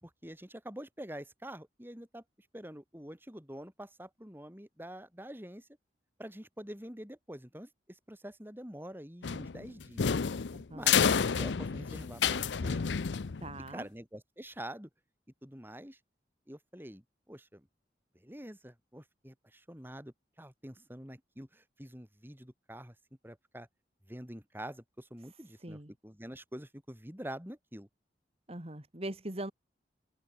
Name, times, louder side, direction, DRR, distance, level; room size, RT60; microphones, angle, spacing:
voice 1, 0.0-2.2 2.5-5.7 6.2-10.1 10.7-12.8 13.7-14.9 15.4-16.0 16.5-17.7 18.2-22.9 23.2-23.7 24.1-27.9, right 1 dB, 10° right, 5.4 m, -46 dB
sound 1, 9.2-13.7, left 7 dB, 85° left, 0.6 m, -30 dB
voice 2, 13.4-13.9 25.6-25.9 28.5-29.5, right 1 dB, 35° right, 2.4 m, -41 dB
head